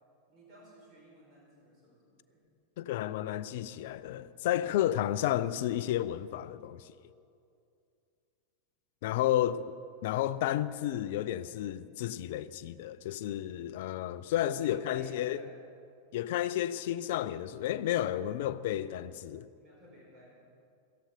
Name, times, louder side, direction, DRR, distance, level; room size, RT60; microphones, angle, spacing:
voice 1, 0.3-2.4 14.6-15.6 19.5-20.5, equal, 30° right, 4.9 m, -53 dB
voice 2, 2.8-6.9 9.0-9.6 10.0-15.4 16.1-19.5, left 12 dB, 50° left, 0.5 m, -32 dB
17.0 x 14.0 x 5.2 m
figure-of-eight pair, 90°, 0 cm